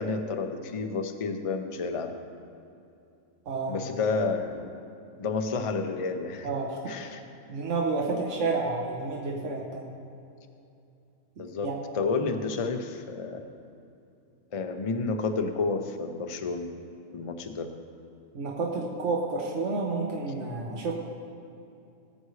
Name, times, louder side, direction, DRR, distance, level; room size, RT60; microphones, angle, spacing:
voice 1, 0.0-2.1 3.7-4.7 5.2-6.5 6.9-7.2 11.4-13.4 14.5-16.7 17.1-17.7, left 4 dB, 35° left, 5 dB, 0.5 m, -30 dB
voice 2, 3.5-3.8 6.4-6.7 7.5-9.9 11.4-11.8 18.3-20.9, right 3 dB, 60° right, -1 dB, 1.3 m, -30 dB
19.0 x 7.9 x 3.2 m, 2.6 s
omnidirectional pair, 1.4 m